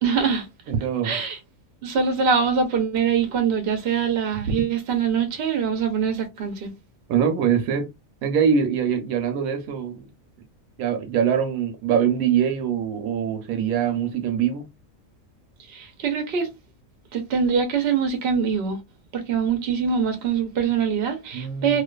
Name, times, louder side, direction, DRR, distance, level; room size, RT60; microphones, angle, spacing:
voice 1, 0.0-0.5 1.0-1.4 1.8-6.7 15.7-16.5 17.1-18.8 19.1-21.8, right 6 dB, 55° right, 0.7 m, -23 dB
voice 2, 0.7-1.2 4.4-4.5 7.1-7.9 8.2-10.1 10.8-14.7 21.3-21.8, right 8 dB, 75° right, 1.0 m, -23 dB
2.4 x 2.4 x 2.2 m
omnidirectional pair, 1.5 m